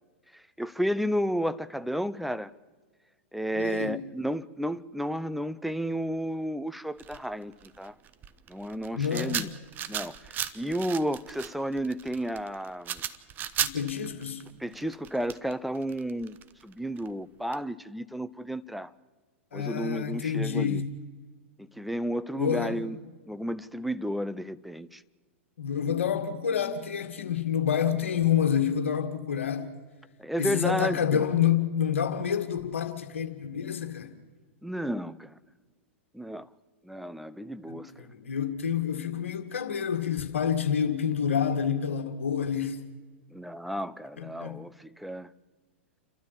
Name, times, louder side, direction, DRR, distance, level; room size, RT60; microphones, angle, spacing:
voice 1, 0.3-2.5 3.3-7.9 8.5-9.5 9.9-13.0 14.6-16.4 16.6-18.9 19.5-20.8 21.6-23.0 23.3-25.0 30.2-31.2 34.6-35.4 36.1-36.5 36.8-38.1 43.3-45.3, equal, ahead, 0.6 m, -32 dB
voice 2, 3.5-4.0 8.9-9.4 13.6-14.4 19.5-20.9 22.4-22.8 25.6-29.7 30.4-34.1 37.7-42.8 44.2-44.6, left 8 dB, 70° left, 2.1 m, -28 dB
sound 1, 7.0-17.1 17.5-17.6, right 10 dB, 25° right, 0.9 m, -36 dB
29.5 x 12.5 x 7.3 m
figure-of-eight pair, 105°, 7 cm